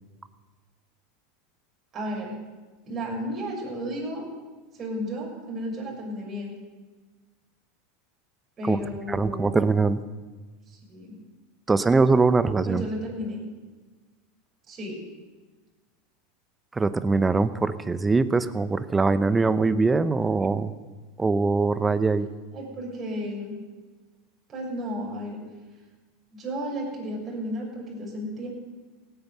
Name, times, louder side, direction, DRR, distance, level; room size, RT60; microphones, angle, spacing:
voice 1, 1.9-2.4 2.8-4.2 4.8-6.5 8.6-9.6 10.7-11.1 12.6-13.4 14.7-15.0 22.5-23.5 24.5-25.4 26.3-28.5, equal, 30° right, -2 dB, 6.5 m, -33 dB
voice 2, 9.1-10.0 11.7-12.8 16.7-20.7 21.2-22.3, right 3 dB, 15° right, 14 dB, 0.8 m, -22 dB
17.0 x 9.5 x 6.9 m, 1.3 s
hypercardioid pair, 95°, 0 cm